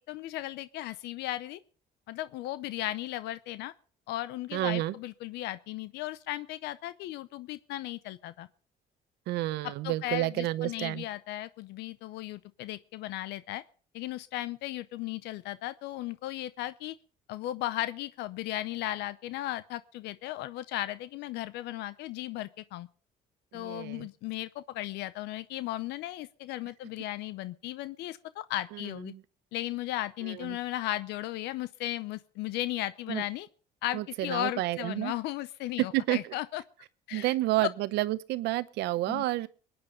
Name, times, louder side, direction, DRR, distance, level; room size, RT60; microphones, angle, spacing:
voice 1, 0.1-1.6 2.1-3.7 4.1-8.5 9.8-13.6 13.9-16.9 17.3-22.9 23.5-29.1 29.5-33.5 33.8-36.6 37.1-37.3 39.1-39.2, left 15 dB, 85° left, 0.7 m, -36 dB
voice 2, 4.5-4.9 9.3-11.1 23.5-24.1 28.7-29.2 30.2-30.6 33.1-33.2 33.9-35.1 35.8-36.3 37.1-39.5, right 17 dB, 85° right, 0.8 m, -30 dB
22.0 x 9.6 x 5.2 m
cardioid pair, 110°, 17 cm